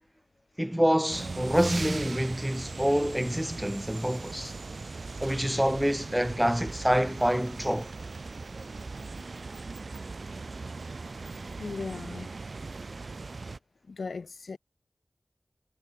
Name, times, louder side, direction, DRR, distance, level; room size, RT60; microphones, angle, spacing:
voice 1, 0.6-4.5 5.2-7.9, equal, 5° right, 1.3 m, -27 dB
sound 1, 1.1-13.6, right 3 dB, 70° right, 3.4 m, -39 dB
voice 2, 11.6-12.3 13.9-14.6, left 4 dB, 90° left, 1.6 m, -37 dB
wide cardioid pair, 55°, 0 cm